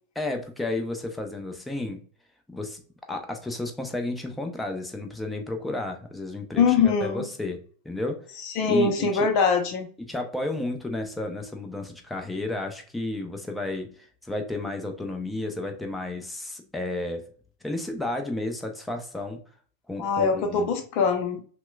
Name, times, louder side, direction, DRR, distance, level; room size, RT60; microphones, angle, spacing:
voice 1, 0.2-2.0 2.5-2.8 3.1-7.6 7.8-8.2 8.7-9.3 10.0-17.2 17.6-19.4 19.9-20.7, left 2 dB, 10° left, 3 dB, 0.7 m, -32 dB
voice 2, 6.6-7.3 8.4-9.9 20.0-21.4, left 5 dB, 50° left, 5 dB, 0.7 m, -23 dB
5.7 x 2.2 x 2.3 m, 0.43 s
figure-of-eight pair, 90°, 0 cm